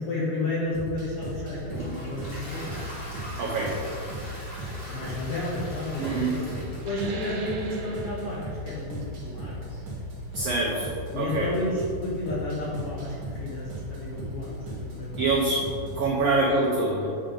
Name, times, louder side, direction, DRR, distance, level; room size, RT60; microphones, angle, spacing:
voice 1, 0.0-2.8 4.6-6.6 6.8-9.8 11.1-15.3, left 2 dB, 85° left, -5 dB, 1.2 m, -32 dB
sound 1, 0.7-16.1, equal, 55° right, 1.2 m, -37 dB
Toilet flush, 1.1-15.4, equal, 35° left, 1.0 m, -44 dB
voice 2, 3.4-3.8 6.0-6.3 10.3-11.5 15.2-15.6 15.9-17.1, right 3 dB, 85° right, -3 dB, 1.4 m, -25 dB
sound 2, 6.8-11.9, right 2 dB, 70° right, 1.9 m, -43 dB
8.7 x 5.2 x 3.8 m, 2.6 s
omnidirectional pair, 4.1 m